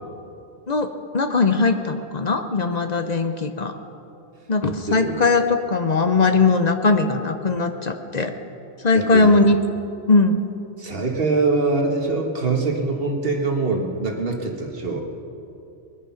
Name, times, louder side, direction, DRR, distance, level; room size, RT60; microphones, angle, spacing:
voice 1, 0.7-3.8 4.5-8.3 8.8-9.6 10.1-10.4, left 3 dB, 40° left, 7 dB, 0.8 m, -19 dB
voice 2, 8.9-9.3 10.8-15.0, right 3 dB, 50° right, 2 dB, 1.8 m, -23 dB
21.0 x 10.0 x 5.7 m, 2.8 s
omnidirectional pair, 1.3 m